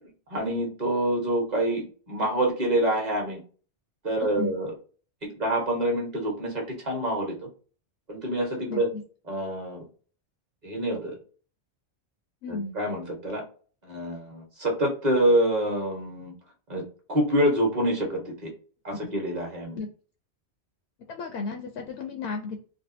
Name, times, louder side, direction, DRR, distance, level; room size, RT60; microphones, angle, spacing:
voice 1, 0.0-3.4 4.0-4.7 5.2-7.3 8.1-8.9 9.3-9.9 10.6-11.2 12.5-13.4 13.8-16.3 16.7-16.8 17.1-18.5 18.8-19.8, right 1 dB, 40° right, 0 dB, 1.2 m, -26 dB
voice 2, 8.7-9.0 12.4-12.8 19.7-19.9 21.1-22.6, left 4 dB, 75° left, 3 dB, 0.8 m, -33 dB
3.3 x 2.3 x 2.6 m, 0.40 s
omnidirectional pair, 1.2 m